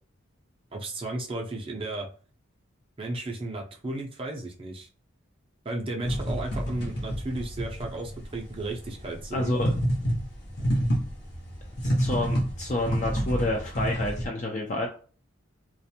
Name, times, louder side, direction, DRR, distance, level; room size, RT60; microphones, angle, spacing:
voice 1, 0.7-2.1 3.0-4.9 5.6-9.6, right 2 dB, 25° right, 1 dB, 0.5 m, -34 dB
sound 1, 6.0-14.3, equal, 50° left, 0.7 m, -29 dB
voice 2, 9.3-9.7 11.8-14.9, left 1 dB, 35° left, 1 dB, 0.3 m, -29 dB
2.5 x 2.2 x 2.8 m, 0.40 s
head